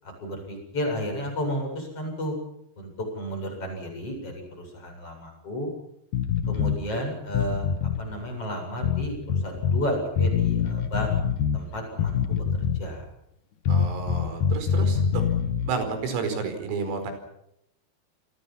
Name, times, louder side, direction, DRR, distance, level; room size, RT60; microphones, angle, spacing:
voice 1, 0.0-2.4 2.8-5.7 6.5-11.2 11.5-13.0, equal, 25° left, 3 dB, 8.8 m, -32 dB
sound 1, 6.1-6.8 7.3-8.0 8.8-9.8 10.2-11.6 12.0-12.9 13.7-15.7, left 7 dB, 65° left, 2.0 m, -25 dB
voice 2, 13.7-15.2 15.6-17.1, right 5 dB, 90° right, 7 dB, 7.6 m, -31 dB
29.5 x 22.0 x 5.9 m, 0.80 s
omnidirectional pair, 5.9 m